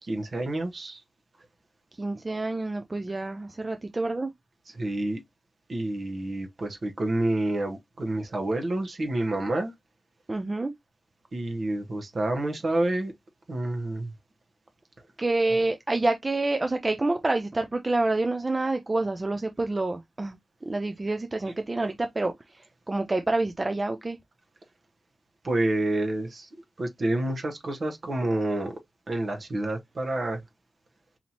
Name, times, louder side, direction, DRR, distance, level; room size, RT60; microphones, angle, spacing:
voice 1, 0.0-1.0 4.7-5.2 5.7-9.7 11.3-13.1 13.5-14.1 25.4-26.5 26.8-28.8 29.1-30.4, right 1 dB, 50° right, 1.0 m, -28 dB
voice 2, 2.0-4.3 10.3-10.7 15.2-20.4 20.6-24.2, right 2 dB, 30° right, 0.4 m, -28 dB
4.1 x 2.8 x 2.9 m
wide cardioid pair, 90°, 0 cm